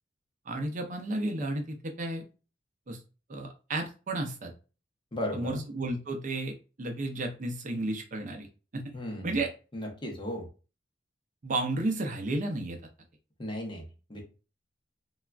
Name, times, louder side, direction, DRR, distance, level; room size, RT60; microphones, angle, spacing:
voice 1, 0.5-2.2 2.9-3.0 3.3-4.5 5.3-8.5 8.7-8.8 9.2-9.5 11.4-12.8, right 2 dB, 40° right, 4 dB, 0.5 m, -32 dB
voice 2, 5.1-5.6 8.9-9.4 9.7-10.5 13.4-14.2, left 1 dB, 25° left, 1 dB, 0.7 m, -36 dB
3.4 x 2.3 x 2.2 m, 0.34 s
head